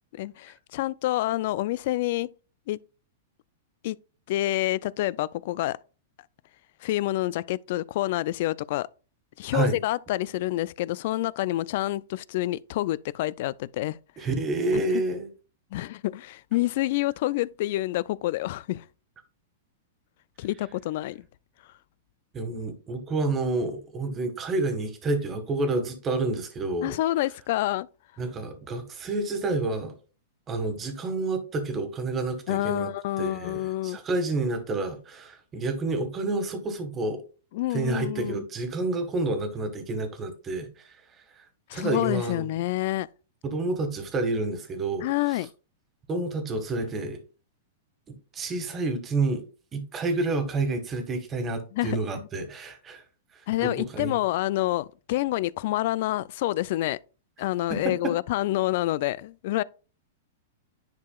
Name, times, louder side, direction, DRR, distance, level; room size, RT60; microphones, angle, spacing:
voice 1, 0.1-2.3 2.7-2.8 3.8-4.0 4.3-5.8 6.8-8.9 9.4-14.0 14.7-14.8 15.7-18.8 20.4-21.2 26.8-27.9 32.5-34.0 37.5-38.5 41.7-43.1 45.0-45.5 51.7-52.0 53.5-57.0 57.4-59.6, left 16 dB, 55° left, 0.3 m, -28 dB
voice 2, 14.2-15.3 22.3-26.9 28.2-30.0 30.5-32.9 33.2-37.2 37.7-40.9 41.7-42.4 43.4-45.1 46.1-47.2 48.3-49.4 49.7-53.0 53.6-54.2 57.7-58.1, right 2 dB, 25° right, 1.6 m, -29 dB
10.5 x 4.8 x 2.3 m
hypercardioid pair, 130°, 0 cm